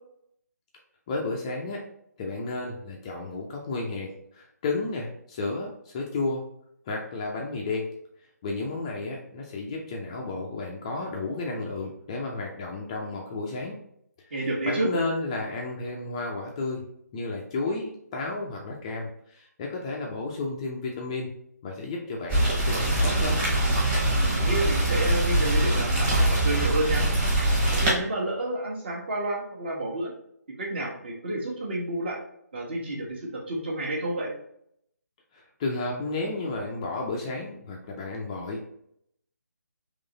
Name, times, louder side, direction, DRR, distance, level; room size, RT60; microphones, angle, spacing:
voice 1, 1.1-1.8 2.2-6.4 6.9-7.9 8.4-13.8 14.3-21.4 21.6-23.4 35.3-38.7, left 3 dB, 20° left, -1 dB, 0.4 m, -32 dB
voice 2, 14.3-14.9 24.3-27.0 27.7-30.1 30.6-32.2 32.5-34.3, right 1 dB, 35° right, -2 dB, 1.2 m, -30 dB
Rain, 22.3-27.9, right 1 dB, 15° right, 1.2 m, -23 dB
3.8 x 3.0 x 3.9 m, 0.72 s
figure-of-eight pair, 150°, 9 cm